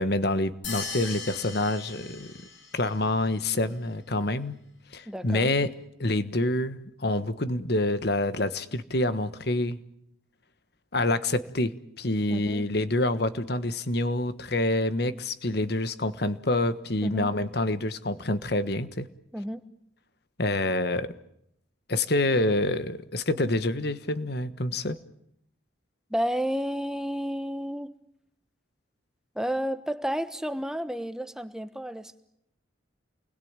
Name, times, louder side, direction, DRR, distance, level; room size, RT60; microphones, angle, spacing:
voice 1, 0.0-2.3 2.7-4.6 4.9-5.7 6.0-9.8 10.9-11.7 12.0-19.1 20.4-21.1 21.9-25.0, left 2 dB, 55° left, 13 dB, 1.4 m, -27 dB
sound 1, 0.6-2.9, left 4 dB, 75° left, 6.6 m, -38 dB
voice 2, 5.1-5.5 12.3-12.7 17.0-17.3 19.3-19.6 26.1-27.9 29.3-32.2, equal, 5° right, 11 dB, 1.2 m, -31 dB
28.5 x 21.0 x 8.9 m, 0.77 s
head